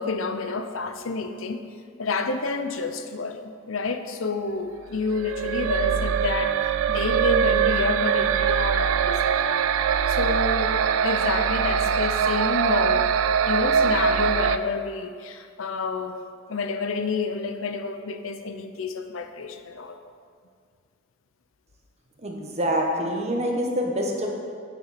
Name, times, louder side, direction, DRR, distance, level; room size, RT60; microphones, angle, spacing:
voice 1, 0.0-1.6 2.0-6.6 6.9-9.7 10.1-10.8 11.0-13.1 13.4-16.2 16.5-20.0, left 4 dB, 85° left, 8 dB, 0.7 m, -29 dB
sound 1, 5.1-14.6, right 7 dB, 90° right, 0.4 m, -23 dB
voice 2, 22.2-24.4, equal, 35° right, 1 dB, 1.3 m, -26 dB
9.3 x 8.8 x 4.3 m, 2.2 s
head